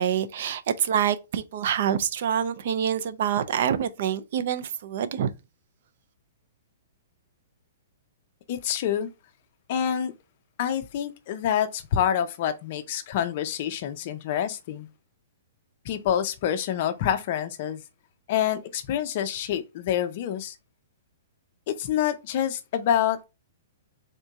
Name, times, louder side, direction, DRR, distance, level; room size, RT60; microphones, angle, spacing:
voice 1, 0.0-5.3, right 9 dB, 50° right, 0.5 m, -26 dB
voice 2, 8.5-9.1 9.7-10.1 10.6-14.9 15.8-17.8 18.3-20.5 21.7-23.3, left 9 dB, 40° left, 0.6 m, -27 dB
3.6 x 2.7 x 4.5 m
hypercardioid pair, 165°, 0 cm